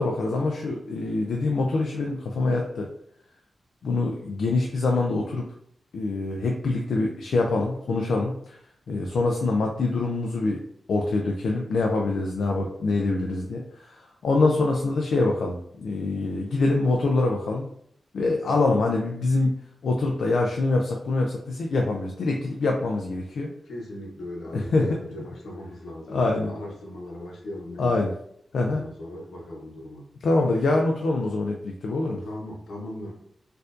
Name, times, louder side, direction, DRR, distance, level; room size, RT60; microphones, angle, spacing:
voice 1, 0.0-2.9 3.8-5.5 5.9-8.6 8.9-10.6 10.9-17.7 18.1-19.5 19.8-23.5 24.5-24.9 26.1-26.5 27.8-28.1 28.5-28.8 30.2-32.2, left 3 dB, 70° left, 1 dB, 0.4 m, -25 dB
voice 2, 12.0-12.4 18.4-18.7 23.6-28.1 28.6-30.0 32.2-33.1, left 1 dB, 90° left, -2 dB, 1.0 m, -38 dB
4.4 x 2.5 x 2.5 m, 0.70 s
wide cardioid pair, 175°, 0 cm